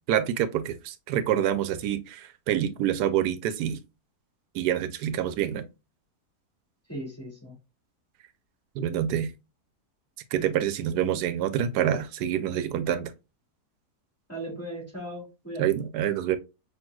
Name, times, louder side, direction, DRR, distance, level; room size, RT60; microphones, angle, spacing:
voice 1, 0.1-3.8 4.5-5.6 8.8-9.3 10.3-13.1 15.6-16.4, right 10 dB, 85° right, 1.1 m, -27 dB
voice 2, 6.9-7.5 14.3-15.7, right 1 dB, 10° left, 1.8 m, -37 dB
6.0 x 2.9 x 2.2 m
omnidirectional pair, 1.7 m